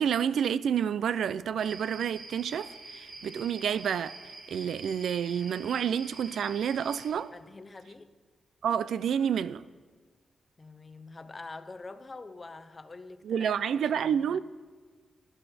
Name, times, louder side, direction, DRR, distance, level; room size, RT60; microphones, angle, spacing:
voice 1, 0.0-4.1 4.5-7.3 8.6-9.6 13.2-14.4, right 8 dB, 85° right, 0.4 m, -29 dB
sound 1, 1.6-7.1, right 3 dB, 60° right, 2.3 m, -46 dB
voice 2, 7.3-8.1 10.6-14.4, left 3 dB, 25° left, 0.6 m, -46 dB
15.5 x 12.0 x 4.2 m
wide cardioid pair, 170°, 0 cm